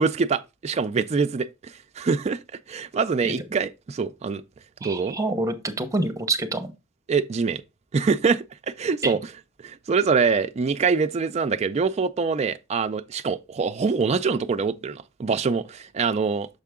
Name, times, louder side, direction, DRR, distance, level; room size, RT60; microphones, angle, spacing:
voice 1, 0.0-2.4 2.7-4.4 4.8-5.2 7.1-7.6 7.9-8.4 8.8-9.2 9.6-16.5, right 5 dB, 30° right, 0.4 m, -24 dB
voice 2, 4.8-6.7 9.0-9.2, right 2 dB, 15° right, 0.8 m, -27 dB
6.6 x 4.6 x 3.6 m
head